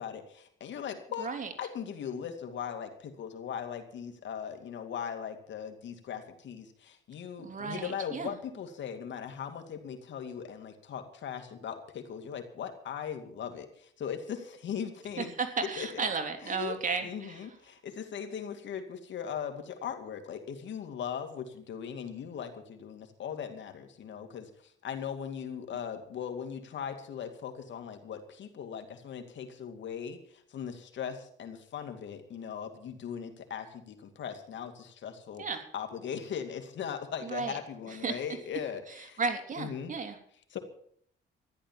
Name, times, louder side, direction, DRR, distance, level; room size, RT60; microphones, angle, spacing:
voice 1, 0.0-1.3 1.6-15.3 15.6-16.0 16.4-16.8 17.0-35.4 35.7-39.2 39.6-39.9 40.5-40.6, left 8 dB, 65° left, 7 dB, 2.5 m, -39 dB
voice 2, 1.2-1.5 7.4-8.3 15.2-17.4 35.4-35.6 37.2-37.6 37.9-38.2 39.2-40.2, right 4 dB, 40° right, 6 dB, 3.2 m, -34 dB
14.0 x 11.5 x 7.6 m, 0.63 s
cardioid pair, 90°, 20 cm